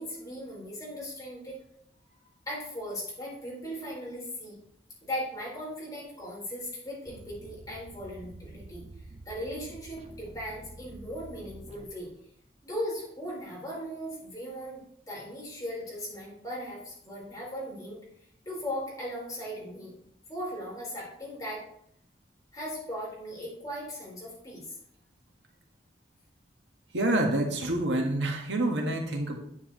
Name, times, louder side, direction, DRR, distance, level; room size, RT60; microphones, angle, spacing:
voice 1, 0.0-1.6 2.5-4.6 5.0-8.8 9.2-12.1 12.6-18.0 18.4-19.9 20.3-21.7 22.5-24.7, equal, 20° left, -5 dB, 4.6 m, -38 dB
sound 1, 7.0-12.3, right 1 dB, 35° right, 1.2 m, -48 dB
voice 2, 26.9-29.4, right 1 dB, 80° right, 1 dB, 1.7 m, -27 dB
9.7 x 9.6 x 3.2 m, 0.70 s
head